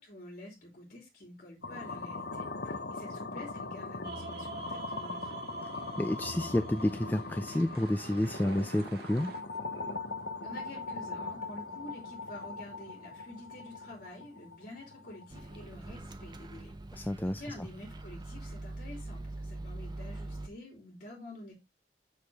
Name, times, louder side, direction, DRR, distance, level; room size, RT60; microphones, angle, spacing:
voice 1, 0.0-5.4 10.4-21.5, left 1 dB, 50° left, 3.3 m, -48 dB
sound 1, 1.6-15.6, left 3 dB, 75° left, 1.0 m, -41 dB
sound 2, 4.0-9.4, right 3 dB, 65° right, 1.8 m, -45 dB
voice 2, 6.0-9.3 16.9-17.4, left 1 dB, 10° left, 0.4 m, -30 dB
Microwave oven, 15.3-20.5, right 2 dB, 25° right, 0.8 m, -43 dB
6.7 x 6.5 x 3.4 m
head